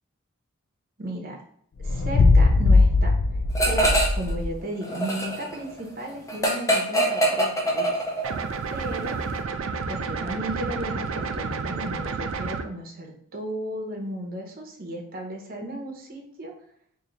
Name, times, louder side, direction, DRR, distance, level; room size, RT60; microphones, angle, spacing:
voice 1, 1.0-1.4 1.8-3.1 3.6-7.9 8.7-9.2 9.9-16.5, right 1 dB, 40° right, 1 dB, 0.7 m, -34 dB
sound 1, 1.8-4.6, left 3 dB, 70° left, 0.4 m, -19 dB
sound 2, 3.5-4.3 4.6-8.4, right 1 dB, 15° left, 0.5 m, -24 dB
sound 3, 8.2-12.6, right 4 dB, 60° right, 0.3 m, -30 dB
3.8 x 2.7 x 3.1 m, 0.64 s
head